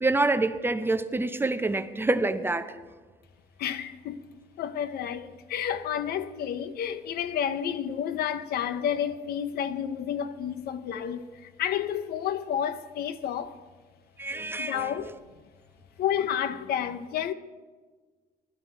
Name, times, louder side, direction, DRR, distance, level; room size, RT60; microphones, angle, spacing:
voice 1, 0.0-2.8 14.2-15.1, right 2 dB, 15° right, 0.7 m, -27 dB
voice 2, 3.6-4.3 4.6-13.6 14.6-15.1 16.0-17.3, left 9 dB, 65° left, 0.8 m, -30 dB
17.0 x 12.5 x 4.6 m
cardioid pair, 110°, 17 cm